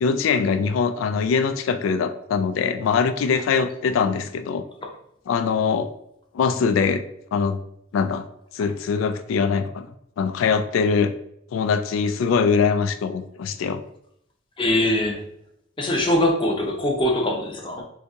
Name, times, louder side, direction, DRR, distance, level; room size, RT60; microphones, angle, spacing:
voice 1, 0.0-4.6 5.3-5.9 6.3-7.0 7.3-7.6 7.9-8.2 8.5-9.9 10.2-11.1 11.5-13.8, left 5 dB, 85° left, 9 dB, 0.3 m, -22 dB
voice 2, 14.6-15.2 15.8-17.8, left 1 dB, 25° left, 1 dB, 0.6 m, -22 dB
2.8 x 2.7 x 3.5 m, 0.74 s
head